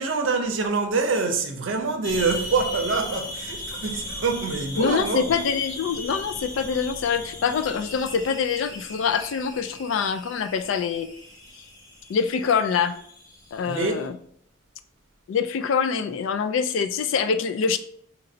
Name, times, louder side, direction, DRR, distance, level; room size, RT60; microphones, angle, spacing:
voice 1, 0.0-5.2 13.7-14.2, right 4 dB, 70° right, 0.5 m, -25 dB
sound 1, 2.0-14.1, left 1 dB, 20° left, 0.6 m, -38 dB
voice 2, 4.8-11.1 12.1-12.9 13.5-14.2 15.3-17.8, left 6 dB, 70° left, 0.3 m, -25 dB
2.9 x 2.6 x 4.1 m
head